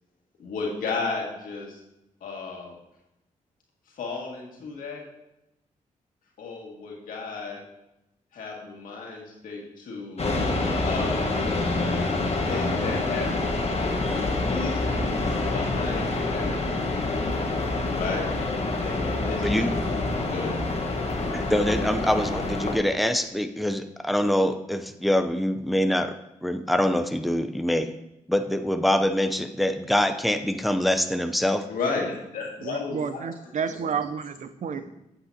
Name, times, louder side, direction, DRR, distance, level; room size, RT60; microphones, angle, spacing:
voice 1, 0.4-1.8 2.2-2.7 3.9-5.1 6.4-7.6 8.3-10.3 10.8-11.4 12.3-15.2 15.5-16.7 17.9-18.3 18.8-19.7 20.3-20.7 21.1-21.2 31.7-33.2 33.7-33.9 34.7-34.8, left 4 dB, 85° left, -2 dB, 2.0 m, -34 dB
sound 1, 10.2-22.8, left 2 dB, 50° left, 1.3 m, -27 dB
voice 2, 21.3-26.1 26.4-27.9 28.3-31.7, left 1 dB, ahead, 8 dB, 0.6 m, -24 dB
voice 3, 32.6-34.8, right 6 dB, 60° right, 12 dB, 0.6 m, -30 dB
8.6 x 7.9 x 2.8 m, 0.90 s
cardioid pair, 60°, 14 cm